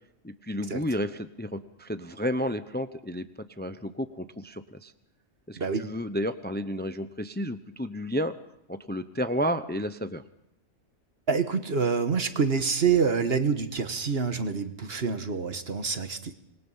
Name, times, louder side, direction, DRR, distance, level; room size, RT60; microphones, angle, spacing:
voice 1, 0.2-3.2 3.6-4.9 5.5-8.4 8.7-10.2, equal, 10° left, 10 dB, 0.8 m, -31 dB
voice 2, 5.6-5.9 11.3-16.3, right 5 dB, 50° right, 8 dB, 1.7 m, -26 dB
26.5 x 21.5 x 5.7 m, 0.80 s
omnidirectional pair, 1.3 m